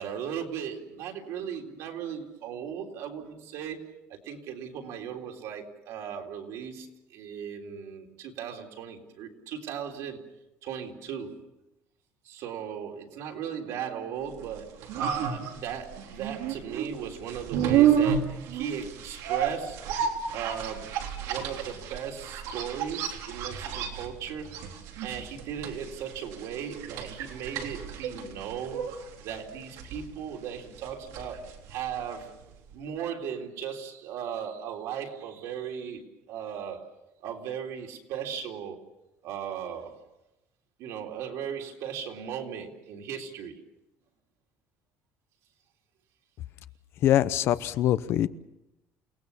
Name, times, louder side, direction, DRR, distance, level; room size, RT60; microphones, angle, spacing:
voice 1, 0.0-3.8 4.1-10.2 10.6-11.4 12.2-19.8 20.3-24.7 25.0-28.8 29.2-32.3 32.7-36.9 37.2-38.8 39.2-39.9 40.8-43.5, right 8 dB, 65° right, 2 dB, 3.6 m, -37 dB
sound 1, 14.4-32.4 32.7-32.8, right 8 dB, 85° right, 3.5 m, -31 dB
voice 2, 47.0-48.3, left 12 dB, 50° left, 14 dB, 0.8 m, -23 dB
29.5 x 18.5 x 7.1 m, 0.93 s
cardioid pair, 180°, 6 cm